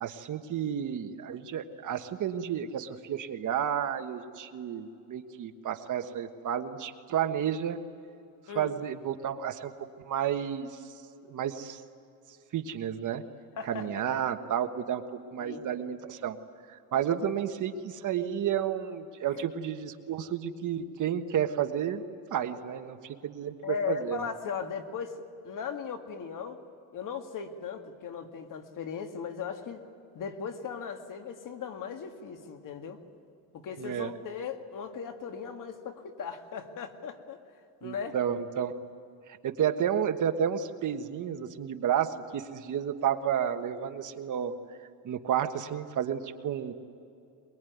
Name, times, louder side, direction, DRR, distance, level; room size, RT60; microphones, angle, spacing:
voice 1, 0.0-7.8 8.5-9.7 10.0-10.8 11.3-11.8 12.5-13.2 13.7-15.0 15.3-16.4 16.7-22.0 22.3-24.3 33.8-34.1 37.8-38.8 39.4-44.5 45.0-46.7, right 9 dB, 50° right, 7 dB, 1.5 m, -31 dB
voice 2, 13.6-13.9 15.4-15.6 23.6-26.6 26.9-29.8 30.1-33.0 33.5-37.4 37.8-38.2, left 6 dB, 50° left, 6 dB, 2.2 m, -37 dB
23.0 x 22.5 x 9.4 m, 2.5 s
cardioid pair, 130°, 40 cm